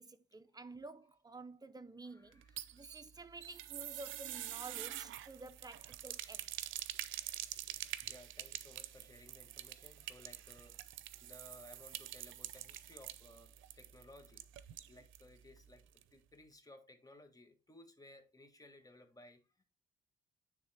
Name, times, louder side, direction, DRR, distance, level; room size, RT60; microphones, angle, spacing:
voice 1, 0.0-2.4 2.7-6.5, right 3 dB, 20° right, 0.7 m, -51 dB
voice 2, 2.0-2.9 3.5-3.6 7.8-14.4 14.9-19.6, left 1 dB, 20° left, 1.5 m, -59 dB
sound 1, 2.3-15.3 15.6-15.7 16.0-16.1, right 13 dB, 80° right, 0.5 m, -46 dB
9.4 x 3.6 x 3.4 m
cardioid pair, 90°, 20 cm